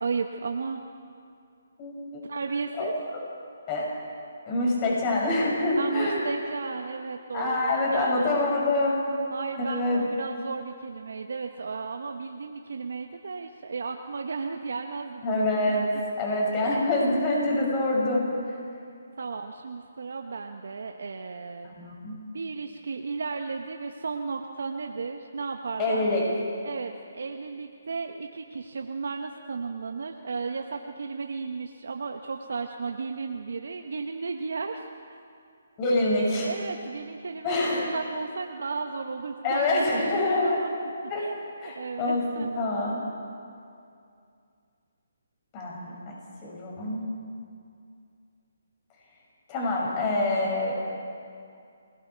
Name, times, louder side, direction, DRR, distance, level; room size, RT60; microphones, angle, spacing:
voice 1, 0.0-0.8 2.2-2.9 5.8-8.6 9.3-15.8 19.2-21.8 22.3-26.1 26.6-34.8 35.1-35.2 36.5-40.7 41.2-41.4 41.6-42.5, right 4 dB, 70° right, 4 dB, 1.2 m, -34 dB
voice 2, 1.8-2.2 2.8-2.9 3.7-3.9 4.5-6.2 7.3-9.0 9.7-10.0 15.2-15.9 16.2-18.2 21.6-22.1 25.8-26.2 35.8-36.5 37.4-37.8 39.4-40.6 41.1-41.2 41.6-43.0 45.5-46.1 46.4-47.0 49.5-50.7, left 2 dB, 25° left, -3 dB, 6.3 m, -26 dB
27.5 x 20.5 x 4.7 m, 2.4 s
hypercardioid pair, 150°, 0 cm